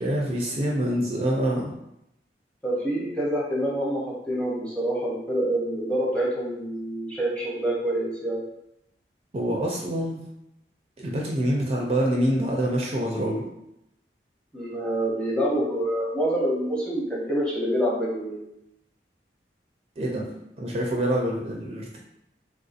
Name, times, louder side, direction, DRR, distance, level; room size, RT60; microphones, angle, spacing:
voice 1, 0.0-1.7 9.3-10.2 11.0-13.4 20.0-22.0, right 1 dB, 35° right, -2 dB, 0.4 m, -26 dB
voice 2, 2.6-8.4 14.5-18.4, right 1 dB, 5° left, -5 dB, 0.7 m, -26 dB
3.4 x 2.6 x 2.4 m, 0.83 s
head